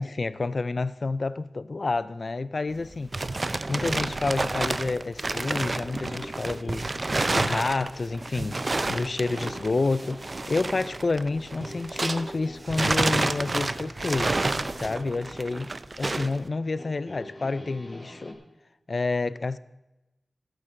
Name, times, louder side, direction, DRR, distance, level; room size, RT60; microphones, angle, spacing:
voice 1, 0.0-3.1 3.7-6.9 7.3-14.4 14.7-15.7 16.0-18.4 18.9-19.6, left 3 dB, 50° left, 0.3 m, -29 dB
sound 1, 2.7-12.4 12.7-16.4, right 2 dB, 35° right, 0.5 m, -29 dB
sound 2, 5.2-18.3, left 1 dB, 20° left, 1.9 m, -45 dB
13.5 x 11.5 x 3.7 m
wide cardioid pair, 105°, 0 cm